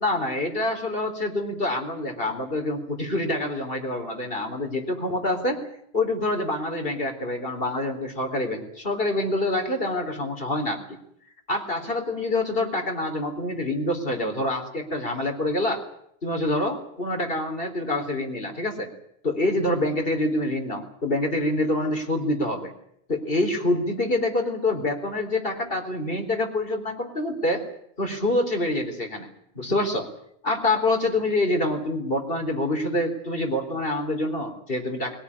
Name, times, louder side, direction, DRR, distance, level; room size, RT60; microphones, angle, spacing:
voice 1, 0.0-5.6 5.9-11.0 11.5-15.8 16.2-18.9 19.2-22.7 23.1-27.6 28.0-29.3 29.6-30.1 30.4-35.2, left 1 dB, 65° left, 4 dB, 4.1 m, -26 dB
22.0 x 17.0 x 9.9 m, 0.71 s
omnidirectional pair, 1.0 m